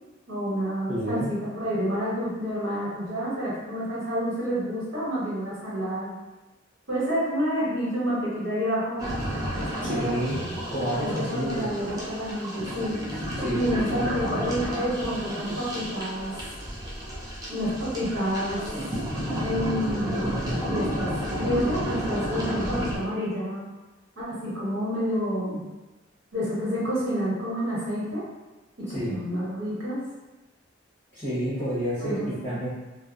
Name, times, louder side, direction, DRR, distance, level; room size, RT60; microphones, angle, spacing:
voice 1, 0.3-6.1 6.9-9.1 9.5-10.2 10.9-13.0 13.5-16.3 17.5-18.6 19.4-23.7 24.2-25.6 26.3-28.2 28.8-30.0 32.0-32.6, equal, 80° right, -9 dB, 1.2 m, -29 dB
voice 2, 0.9-1.3 9.8-11.7 13.4-14.5 28.9-29.1 31.1-32.7, equal, 10° left, -15 dB, 0.8 m, -30 dB
sound 1, 9.0-23.0, equal, 20° right, 0.4 m, -31 dB
2.7 x 2.0 x 2.3 m, 1.1 s
head